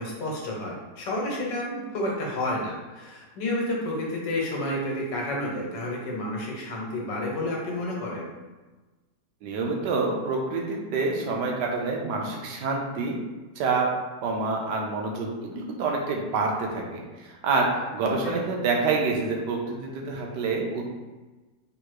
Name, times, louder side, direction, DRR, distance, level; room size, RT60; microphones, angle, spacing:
voice 1, 0.0-8.3 18.0-18.4, left 1 dB, 80° left, -2 dB, 1.7 m, -30 dB
voice 2, 9.4-13.2 13.6-13.9 14.2-20.9, right 3 dB, 75° right, 0 dB, 1.3 m, -27 dB
3.8 x 3.0 x 4.6 m, 1.2 s
omnidirectional pair, 1.9 m